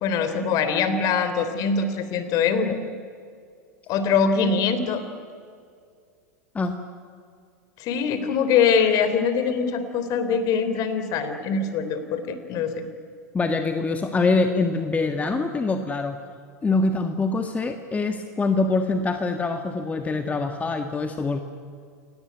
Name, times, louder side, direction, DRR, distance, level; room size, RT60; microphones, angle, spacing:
voice 1, 0.0-2.8 3.9-5.0 7.8-12.7, left 6 dB, 45° left, 10 dB, 3.3 m, -23 dB
voice 2, 13.3-16.2 16.6-21.4, left 3 dB, 15° left, 6 dB, 1.5 m, -24 dB
28.5 x 18.5 x 9.5 m, 2.3 s
hypercardioid pair, 95°, 9 cm